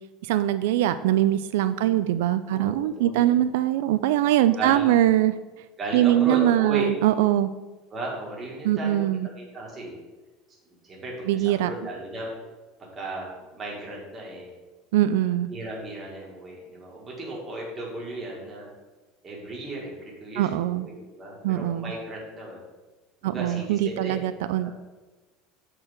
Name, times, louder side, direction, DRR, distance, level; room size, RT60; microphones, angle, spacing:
voice 1, 0.2-5.4 5.9-7.5 8.6-9.3 11.3-11.7 14.9-15.5 20.4-20.9 21.4-21.9 23.2-24.7, right 13 dB, 90° right, 12 dB, 0.3 m, -22 dB
voice 2, 2.5-3.3 4.4-5.1 5.8-6.9 7.9-9.1 9.3-10.0 10.8-12.3 12.8-14.5 15.5-18.7 19.2-22.6 23.2-24.2 24.6-24.7, right 2 dB, 15° right, -3 dB, 1.8 m, -36 dB
7.6 x 4.5 x 4.9 m, 1.2 s
cardioid pair, 170°, 0 cm